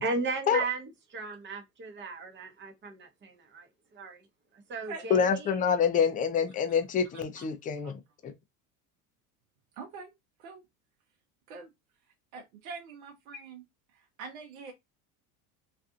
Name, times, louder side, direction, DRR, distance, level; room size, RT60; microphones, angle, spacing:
voice 1, 0.0-3.7 3.9-4.2 4.7-5.5, right 3 dB, 25° right, 0.9 m, -35 dB
voice 2, 5.1-8.0 8.2-8.3, left 7 dB, 20° left, 0.4 m, -26 dB
voice 3, 7.1-7.4 7.8-7.9 9.8-10.1 10.4-10.6 11.5-11.7 12.3-13.6 13.9-14.7, right 4 dB, 80° right, 0.8 m, -44 dB
2.5 x 2.5 x 2.4 m
supercardioid pair, 95°, 42 cm